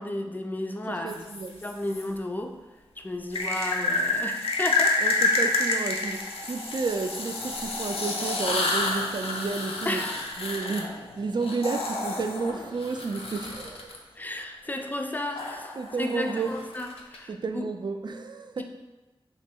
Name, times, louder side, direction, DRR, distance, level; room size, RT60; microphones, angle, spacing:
voice 1, 0.0-1.2 1.6-2.6 3.0-5.0 9.9-10.3 14.2-17.6, left 1 dB, 20° left, 3 dB, 0.4 m, -33 dB
voice 2, 0.9-1.7 5.0-10.0 10.4-14.0 15.8-16.6 17.3-18.6, right 4 dB, 50° right, 7 dB, 0.4 m, -31 dB
sound 1, 1.1-2.0 3.3-14.0 15.4-17.2, left 3 dB, 80° left, 0.6 m, -29 dB
3.1 x 3.0 x 4.4 m, 1.1 s
wide cardioid pair, 100°, 10 cm